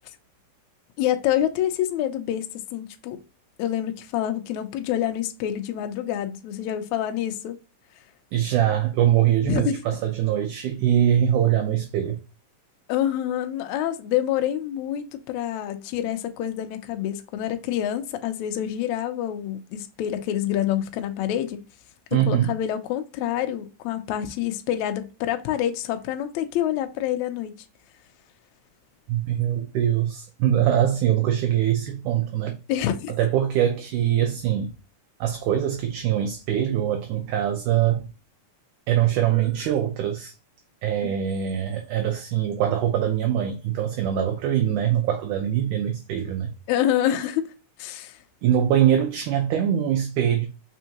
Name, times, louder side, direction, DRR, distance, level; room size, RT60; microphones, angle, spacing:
voice 1, 1.0-2.5 2.7-3.2 3.6-7.6 9.4-9.8 12.9-21.6 22.3-27.6 32.7-33.1 41.0-41.1 46.7-47.4 47.8-48.2, left 11 dB, 80° left, 1.6 m, -27 dB
voice 2, 8.3-12.2 22.1-22.5 29.1-32.6 33.2-34.7 35.2-38.1 38.9-40.3 40.8-46.5 48.4-50.5, right 10 dB, 75° right, 1.9 m, -23 dB
5.2 x 3.5 x 2.9 m
omnidirectional pair, 3.9 m